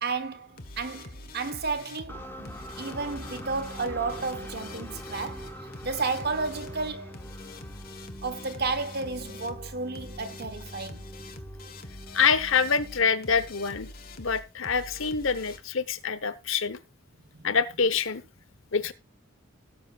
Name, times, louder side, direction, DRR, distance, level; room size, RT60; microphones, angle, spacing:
voice 1, 0.0-5.5 5.8-7.2 8.2-11.0, right 4 dB, 45° right, 1.1 m, -32 dB
sound 1, 0.6-15.6, left 2 dB, 45° left, 1.4 m, -44 dB
sound 2, 2.1-13.9, equal, 10° left, 1.0 m, -44 dB
voice 2, 12.1-13.9 14.2-16.8 17.4-18.2 18.7-18.9, left 5 dB, 65° left, 1.0 m, -26 dB
17.5 x 7.5 x 2.4 m
head